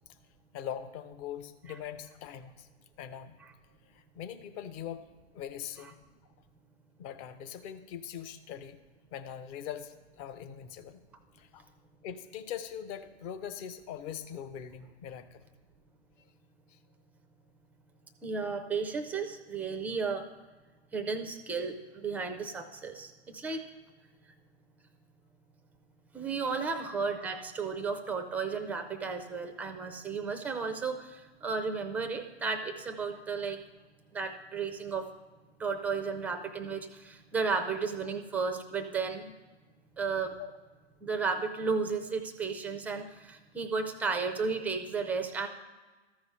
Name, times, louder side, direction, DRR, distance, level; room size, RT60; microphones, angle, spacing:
voice 1, 0.5-2.7 3.0-3.4 3.8-5.1 5.3-6.0 7.0-8.8 9.1-11.0 11.3-11.7 12.0-15.4 16.7-16.8 26.7-26.8 40.4-40.5, left 9 dB, 35° left, 10 dB, 0.7 m, -42 dB
voice 2, 18.2-20.3 20.9-23.6 26.1-33.6 34.1-35.1 35.6-39.3 40.0-40.3 41.0-45.5, right 5 dB, 5° right, 6 dB, 0.4 m, -33 dB
13.5 x 4.8 x 5.5 m, 1.3 s
hypercardioid pair, 120°, 33 cm